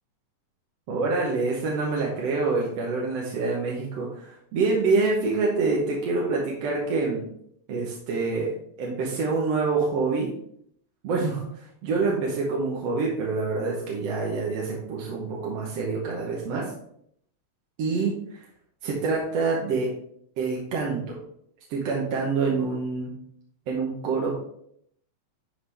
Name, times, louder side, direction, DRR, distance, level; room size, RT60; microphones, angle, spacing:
voice 1, 0.9-7.3 7.7-10.3 11.0-16.7 17.8-18.5 18.8-19.9 20.4-21.2 21.7-23.1 23.7-24.3, right 4 dB, 65° right, -3 dB, 2.0 m, -26 dB
11.5 x 4.0 x 3.4 m, 0.70 s
omnidirectional pair, 3.4 m